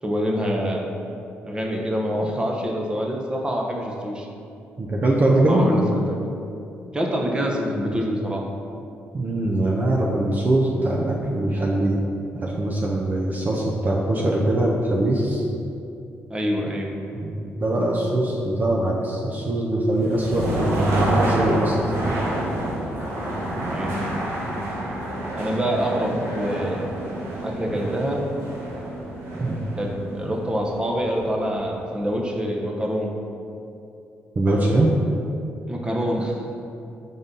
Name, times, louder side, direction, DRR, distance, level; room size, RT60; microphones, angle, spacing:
voice 1, 0.0-0.9 1.4-4.3 5.5-6.2 6.9-8.4 16.3-16.9 23.7-24.0 25.3-26.9 27.4-28.2 29.8-33.1 35.7-36.5, equal, 20° right, 0 dB, 0.9 m, -25 dB
voice 2, 4.8-5.6 9.1-12.0 12.4-15.4 17.1-22.0 29.4-29.6 34.4-34.9, right 1 dB, 40° right, -2 dB, 0.7 m, -22 dB
sound 1, 19.9-31.8, right 1 dB, 80° right, 1.3 m, -28 dB
5.4 x 3.9 x 5.4 m, 2.7 s
cardioid pair, 80°, 5 cm